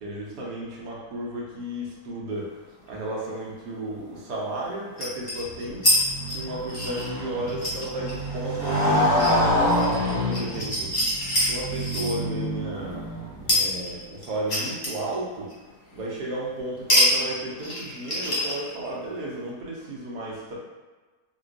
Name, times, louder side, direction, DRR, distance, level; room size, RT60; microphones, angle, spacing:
voice 1, 0.0-2.5 2.9-5.8 6.3-10.9 11.5-13.0 13.5-15.5 15.9-20.6, right 1 dB, 85° right, -4 dB, 1.4 m, -33 dB
sound 1, 2.9-3.0 5.0-6.0 6.3-12.1 13.5-15.2 15.5-15.6 16.9-17.1 17.4-18.9, left 1 dB, 45° left, 0.7 m, -25 dB
Motorcycle, 5.4-13.6, left 1 dB, 30° right, 1.0 m, -27 dB
4.2 x 2.3 x 2.5 m, 1.3 s
omnidirectional pair, 1.7 m